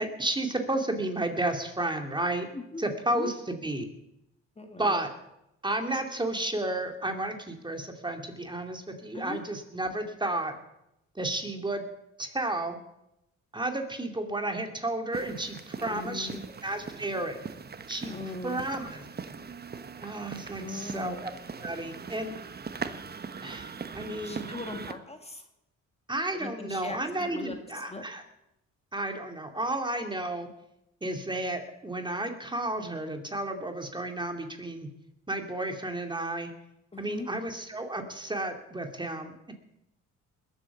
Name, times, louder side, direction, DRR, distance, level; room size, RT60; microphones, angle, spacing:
voice 1, 0.0-2.5 2.8-3.8 4.8-5.1 5.6-10.5 11.2-11.8 12.2-12.8 13.5-17.4 17.9-18.1 18.4-19.0 20.0-21.3 21.6-22.3 23.4-24.5 26.1-28.2 28.9-30.5 31.0-34.9 35.3-36.5 37.0-39.5, right 1 dB, 15° right, 5 dB, 2.3 m, -32 dB
voice 2, 4.6-4.9 9.1-9.4 15.8-16.4 18.0-18.6 20.6-21.2 24.2-25.4 26.3-28.0 36.9-37.3, left 3 dB, 20° left, 5 dB, 1.9 m, -39 dB
sound 1, 15.1-24.9, right 5 dB, 30° right, 1.1 m, -41 dB
20.5 x 8.3 x 7.1 m, 0.84 s
cardioid pair, 90°, 30 cm